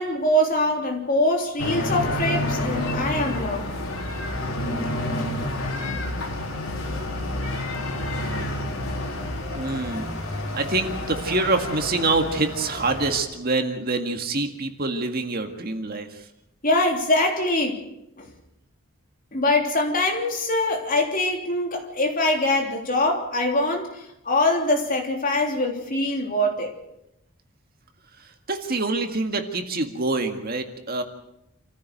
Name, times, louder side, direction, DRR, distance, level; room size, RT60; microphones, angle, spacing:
voice 1, 0.0-3.6 16.6-17.8 18.2-18.3 19.3-26.7, left 1 dB, 40° left, 2 dB, 3.4 m, -23 dB
sound 1, 1.6-13.2, left 1 dB, 90° left, 3.8 m, -29 dB
voice 2, 9.5-10.1 10.5-16.3 28.2-31.0, right 3 dB, 45° right, 5 dB, 1.9 m, -26 dB
27.5 x 15.0 x 6.6 m, 0.84 s
head